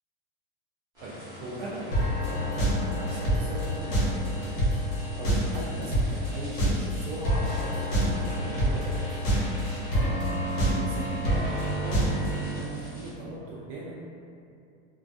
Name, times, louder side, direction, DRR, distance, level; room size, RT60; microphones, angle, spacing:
sound 1, 0.9-13.1, left 1 dB, 15° right, 0.6 m, -48 dB
voice 1, 1.0-4.6 4.9-9.0 9.5-13.9, right 1 dB, 65° right, -6 dB, 0.4 m, -39 dB
sound 2, 1.9-12.6, equal, 90° left, 0.9 m, -27 dB
sound 3, 2.2-4.0 4.4-6.2 6.6-8.4 8.8-10.6, left 2 dB, 25° left, 0.4 m, -43 dB
2.3 x 2.2 x 2.5 m, 2.5 s
supercardioid pair, 180°, 29 cm